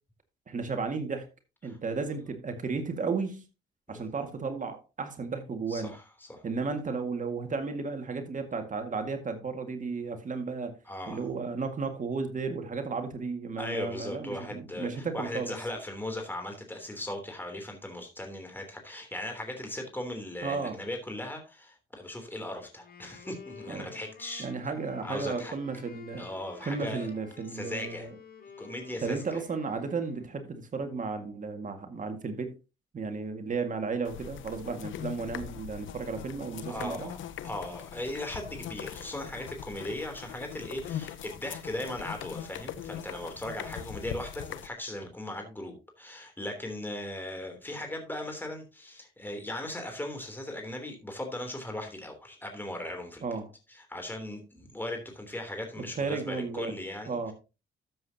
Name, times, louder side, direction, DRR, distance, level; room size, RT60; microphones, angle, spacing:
voice 1, 0.5-1.3 1.6-3.4 3.9-5.9 6.4-10.7 11.1-15.6 20.4-20.8 23.7-23.9 24.4-26.3 26.6-28.1 29.0-32.5 32.9-37.1 53.2-53.5 55.8-56.7 57.1-57.3, right 4 dB, 40° right, 2.0 m, -34 dB
voice 2, 5.7-6.4 10.9-11.3 13.6-24.5 25.0-25.5 26.2-27.1 27.4-28.1 28.6-29.4 36.7-53.2 53.7-57.3, left 1 dB, 10° left, 3.3 m, -38 dB
Wind instrument woodwind instrument, 22.8-30.5, left 5 dB, 50° left, 6.5 m, -51 dB
sound 1, 34.1-44.7, left 10 dB, 75° left, 0.9 m, -41 dB
13.5 x 7.7 x 2.9 m
cardioid pair, 90°, 20 cm